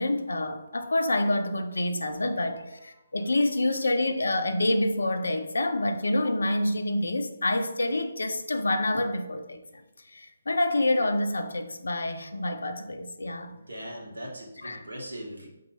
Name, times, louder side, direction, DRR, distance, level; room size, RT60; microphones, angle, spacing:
voice 1, 0.0-9.6 10.1-13.6 14.6-14.8, left 1 dB, 65° left, 7 dB, 0.5 m, -27 dB
voice 2, 13.5-15.5, equal, 70° right, -1 dB, 1.2 m, -40 dB
5.4 x 2.7 x 2.8 m, 0.96 s
figure-of-eight pair, 145°, 0 cm